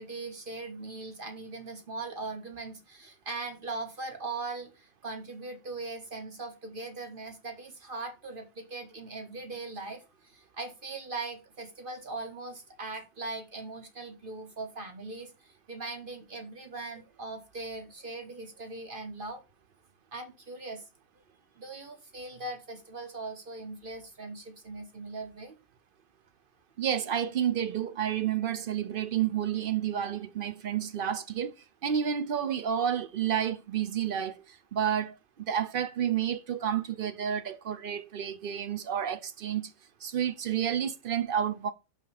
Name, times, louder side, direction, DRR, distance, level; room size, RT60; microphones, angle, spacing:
voice 1, 0.0-19.4 20.1-20.8 21.6-25.6, right 3 dB, 40° right, 1.3 m, -40 dB
voice 2, 26.8-31.5 31.8-39.7 40.0-41.7, right 9 dB, 60° right, 0.6 m, -30 dB
5.7 x 5.2 x 4.8 m
omnidirectional pair, 1.5 m